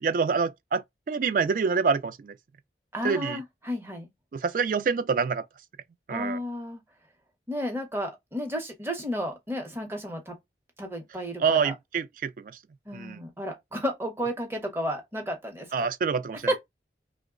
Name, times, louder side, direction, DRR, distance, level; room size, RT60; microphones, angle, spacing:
voice 1, 0.0-2.3 3.0-3.4 4.3-5.4 6.1-6.4 11.4-12.6 12.9-13.2 15.7-16.5, right 5 dB, 50° right, 0.3 m, -26 dB
voice 2, 2.9-4.1 6.1-6.8 7.5-10.3 10.8-11.7 12.9-15.9 16.5-16.6, equal, 15° right, 0.7 m, -32 dB
3.0 x 2.1 x 3.5 m
head